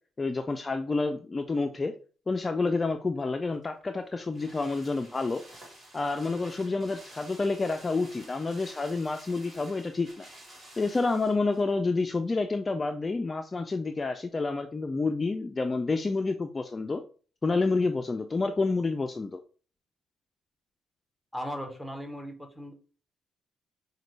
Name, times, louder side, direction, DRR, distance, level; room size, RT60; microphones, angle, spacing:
voice 1, 0.2-1.9 2.3-5.4 5.9-10.3 10.7-17.0 17.4-19.4, left 3 dB, 25° left, 6 dB, 0.3 m, -29 dB
sound 1, 3.5-11.7 12.0-12.1, right 1 dB, 35° right, 2.0 m, -51 dB
voice 2, 21.3-22.7, equal, 5° right, 4 dB, 0.9 m, -37 dB
5.0 x 2.2 x 3.2 m, 0.39 s
cardioid pair, 90°, 0 cm